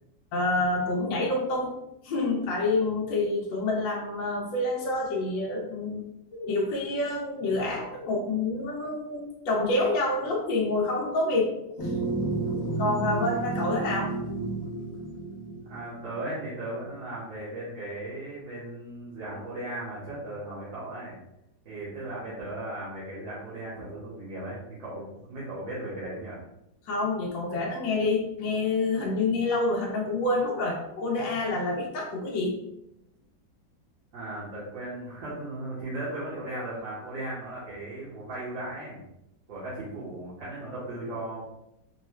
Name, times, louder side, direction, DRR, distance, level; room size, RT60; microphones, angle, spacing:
voice 1, 0.3-1.7 2.0-6.0 6.3-11.5 11.8-11.9 12.8-14.1 26.8-32.6, left 2 dB, 80° left, -2 dB, 1.4 m, -27 dB
sound 1, 11.8-16.4, right 2 dB, 60° left, 1.2 m, -31 dB
voice 2, 13.1-13.5 15.7-21.2 21.6-26.4 34.1-39.0 39.5-41.4, right 1 dB, 85° right, -10 dB, 2.1 m, -37 dB
5.3 x 2.3 x 3.1 m, 0.83 s
omnidirectional pair, 2.0 m